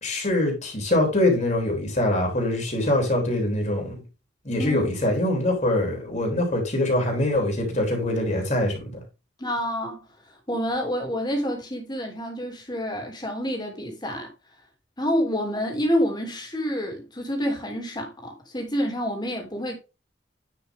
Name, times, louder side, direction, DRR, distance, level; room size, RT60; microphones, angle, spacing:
voice 1, 0.0-3.9 4.4-9.0, left 1 dB, 40° left, 3.4 m, -24 dB
voice 2, 4.6-4.9 9.4-14.3 15.0-19.8, equal, 25° left, 3.0 m, -28 dB
10.0 x 5.9 x 3.7 m
head